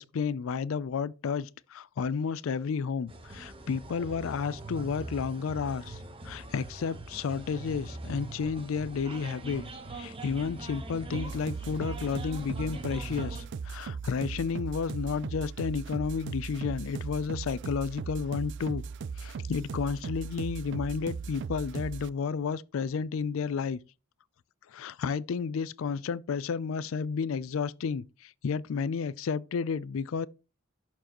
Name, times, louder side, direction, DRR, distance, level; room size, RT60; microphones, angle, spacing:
voice 1, 0.0-6.0 6.2-9.6 9.9-18.8 19.2-23.8 24.7-30.3, left 5 dB, 65° left, 0.4 m, -32 dB
sound 1, 3.1-13.4, right 2 dB, 25° right, 1.0 m, -42 dB
sound 2, 11.1-22.1, right 5 dB, 55° right, 0.3 m, -38 dB
11.0 x 4.7 x 2.9 m
head